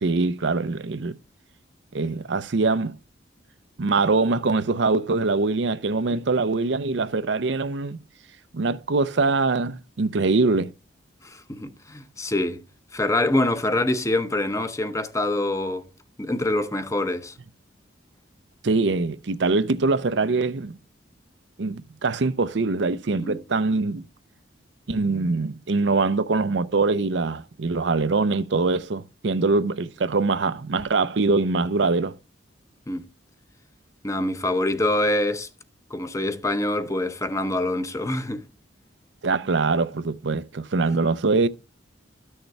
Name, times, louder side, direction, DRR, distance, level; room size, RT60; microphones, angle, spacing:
voice 1, 0.0-1.2 1.9-3.0 3.8-8.0 8.5-10.7 18.6-20.8 21.6-24.1 24.9-32.2 39.2-41.5, right 3 dB, 70° right, 0.6 m, -23 dB
voice 2, 11.2-12.6 12.9-15.9 16.2-17.4 23.2-23.4 32.9-33.0 34.0-35.5 35.9-38.5, left 1 dB, 15° left, 0.7 m, -25 dB
13.0 x 6.5 x 3.3 m
head